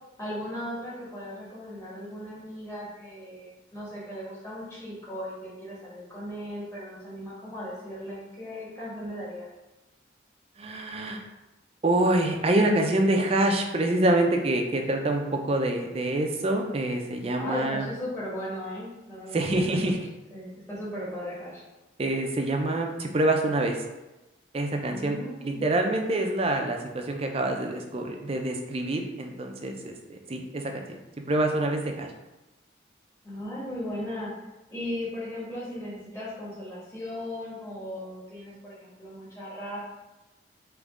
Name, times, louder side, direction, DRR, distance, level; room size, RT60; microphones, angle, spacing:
voice 1, 0.2-9.5 17.3-20.0 20.3-21.6 24.9-25.7 33.2-39.8, left 1 dB, 15° left, -8 dB, 1.3 m, -37 dB
voice 2, 10.6-11.2 11.8-17.9 19.3-20.0 22.0-23.8 24.5-25.2 25.4-31.0 31.3-32.1, right 1 dB, 30° right, 3 dB, 0.4 m, -26 dB
3.6 x 3.0 x 3.6 m, 1.0 s
head